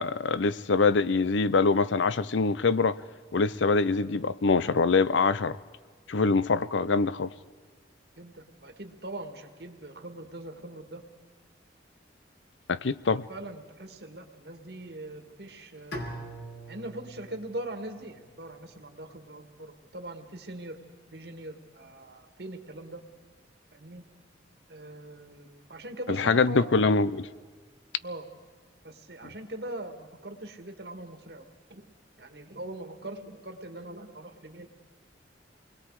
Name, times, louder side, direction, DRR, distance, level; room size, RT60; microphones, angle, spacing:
voice 1, 0.0-3.0 3.3-5.6 6.1-7.3 12.7-13.2 26.1-27.3, left 4 dB, 85° left, 0.6 m, -24 dB
voice 2, 8.2-11.0 13.1-16.2 16.7-20.8 21.1-23.0 23.7-24.0 24.7-27.0 28.0-28.3 28.8-31.5 31.7-31.9 32.2-34.7, right 1 dB, 60° right, 1.9 m, -41 dB
Bowed string instrument, 15.9-18.9, right 1 dB, 70° left, 3.2 m, -43 dB
27.5 x 21.0 x 4.9 m
head